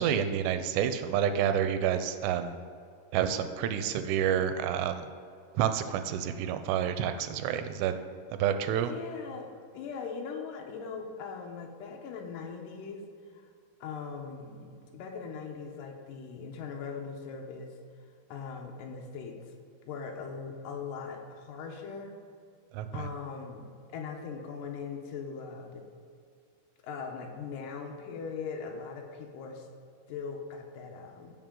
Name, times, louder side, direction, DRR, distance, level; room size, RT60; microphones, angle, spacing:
voice 1, 0.0-2.5 3.1-5.0 5.5-8.0 8.3-8.9 22.7-23.1, right 9 dB, 80° right, 9 dB, 2.6 m, -29 dB
voice 2, 8.7-13.0 13.3-13.5 13.8-17.8 18.3-19.4 19.9-22.2 22.9-25.8 26.8-29.7 30.1-31.3, left 5 dB, 85° left, 1 dB, 1.9 m, -40 dB
16.0 x 5.5 x 3.8 m, 2.4 s
omnidirectional pair, 5.0 m